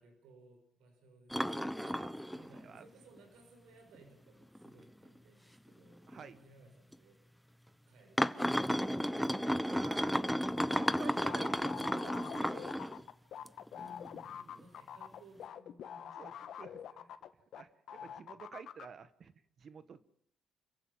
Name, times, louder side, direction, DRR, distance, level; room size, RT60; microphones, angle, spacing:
voice 1, 0.0-2.0 2.3-7.2 7.6-9.5 13.7-16.6 16.9-17.1 18.0-18.2, right 1 dB, 90° right, 5 dB, 6.6 m, -61 dB
sound 1, 1.3-2.8 3.2-3.3 3.9-4.0 4.6-4.7 5.0-5.1 6.1-6.2 6.9-7.0 8.2-13.0 13.5-14.2 14.6-14.7, equal, ahead, 0.9 m, -33 dB
voice 2, 1.8-2.1 2.4-2.8 6.1-6.4 9.6-12.9 14.4-14.6 16.2-16.3 16.6-17.1 17.5-20.0, right 6 dB, 55° right, 13 dB, 1.6 m, -52 dB
sound 2, 10.6-17.6 17.9-18.8, left 9 dB, 70° left, 1.5 m, -46 dB
29.5 x 15.5 x 7.5 m, 0.69 s
cardioid pair, 90°, 0 cm